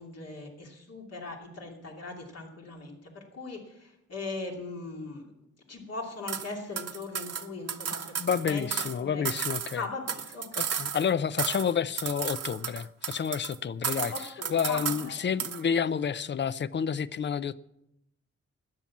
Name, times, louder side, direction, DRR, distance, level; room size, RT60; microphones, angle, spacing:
voice 1, 0.0-5.3 5.7-8.1 8.5-8.7 9.0-9.2 9.7-10.8 11.4-11.5 14.1-15.2, left 3 dB, 55° left, 2.8 m, -39 dB
sound 1, 6.3-6.5 6.8-9.0 9.2-11.1 11.4-11.7 12.0-13.6 13.8-15.1 15.4-15.6, right 8 dB, 55° right, 0.9 m, -33 dB
voice 2, 8.2-9.8 10.6-17.6, left 7 dB, 40° left, 0.4 m, -29 dB
13.5 x 9.2 x 7.2 m
wide cardioid pair, 140°, 29 cm